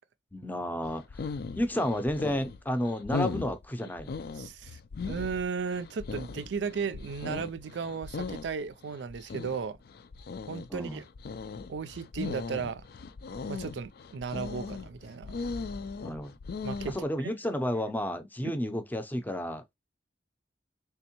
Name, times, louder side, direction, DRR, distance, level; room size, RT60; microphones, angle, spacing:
voice 1, 0.3-1.3 1.6-4.1 10.7-11.0 16.0-16.3 16.9-19.8, left 1 dB, 10° left, 0.6 m, -31 dB
sound 1, 0.8-17.0, left 4 dB, 60° left, 0.4 m, -38 dB
voice 2, 4.4-4.8 5.1-9.8 10.5-11.1 11.7-12.8 13.5-15.4 16.6-17.3 18.4-18.5, right 5 dB, 70° right, 0.4 m, -35 dB
3.5 x 3.1 x 2.9 m
head